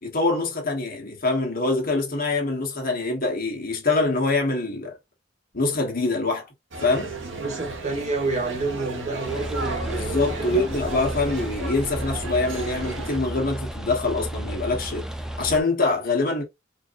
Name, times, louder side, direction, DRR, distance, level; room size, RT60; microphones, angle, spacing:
voice 1, 0.0-5.0 5.5-6.5 6.8-7.1 9.9-15.1 15.4-16.4, left 3 dB, 50° left, 1.5 m, -24 dB
sound 1, 6.7-13.2, right 3 dB, 75° right, 1.1 m, -34 dB
voice 2, 7.4-10.7, right 3 dB, 35° right, 1.6 m, -29 dB
sound 2, 9.2-15.6, right 1 dB, 5° right, 0.5 m, -33 dB
4.4 x 2.8 x 2.6 m
head